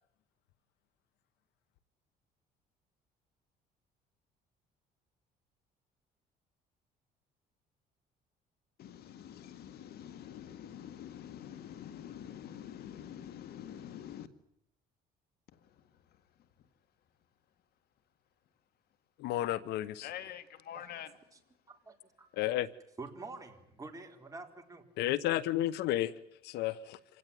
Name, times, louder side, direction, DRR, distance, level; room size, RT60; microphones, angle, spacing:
voice 1, 8.8-14.3 20.0-21.1, left 10 dB, 70° left, 12 dB, 1.9 m, -46 dB
voice 2, 19.2-20.1 22.4-22.7 25.0-26.1 26.4-27.0, left 14 dB, 85° left, 18 dB, 1.1 m, -32 dB
voice 3, 21.7-22.3 23.0-24.8, right 3 dB, 20° right, 3 dB, 4.3 m, -47 dB
27.0 x 17.0 x 10.0 m, 0.74 s
cardioid pair, 110°, 17 cm